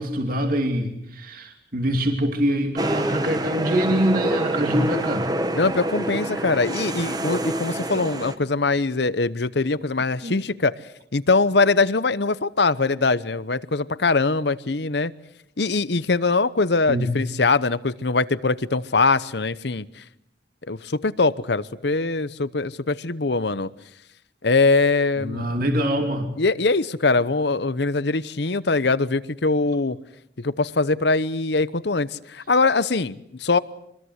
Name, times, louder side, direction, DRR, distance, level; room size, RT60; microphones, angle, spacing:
voice 1, 0.0-5.3 10.2-10.4 16.9-17.1 25.2-26.3, equal, 50° right, 4 dB, 2.8 m, -24 dB
sound 1, 2.8-8.4, right 1 dB, 20° right, 1.5 m, -27 dB
voice 2, 5.5-10.7 11.1-15.1 15.6-20.0 20.7-23.7 24.4-25.5 26.4-30.0 30.4-33.6, left 3 dB, 60° left, 17 dB, 0.9 m, -22 dB
25.5 x 21.5 x 8.1 m, 0.77 s
head